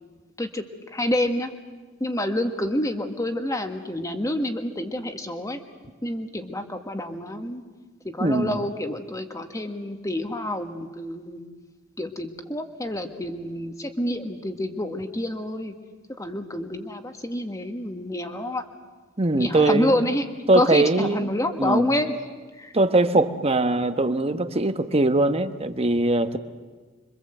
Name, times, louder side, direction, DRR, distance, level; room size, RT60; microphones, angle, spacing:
voice 1, 0.4-1.5 2.0-5.6 6.0-7.6 8.0-11.4 12.0-15.7 16.2-18.6 19.3-20.3 20.5-22.2 22.6-22.7, left 1 dB, 15° left, 6 dB, 1.6 m, -28 dB
voice 2, 8.2-8.6 19.2-20.0 20.5-21.2 21.6-21.9 22.7-26.4, right 2 dB, 30° right, 9 dB, 1.1 m, -21 dB
26.5 x 24.0 x 7.9 m, 1.4 s
head